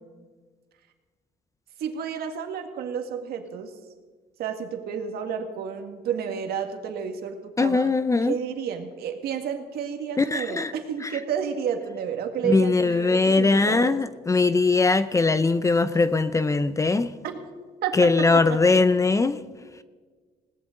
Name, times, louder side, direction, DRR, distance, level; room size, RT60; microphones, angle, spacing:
voice 1, 1.8-3.7 4.4-7.9 8.2-14.0 17.2-17.4 17.8-18.6, right 7 dB, 70° right, 1.9 m, -31 dB
voice 2, 7.6-8.4 10.2-10.7 11.0-11.1 12.4-17.1 17.9-19.4, left 3 dB, 20° left, 0.6 m, -21 dB
20.5 x 17.5 x 3.9 m
cardioid pair, 110°, 17 cm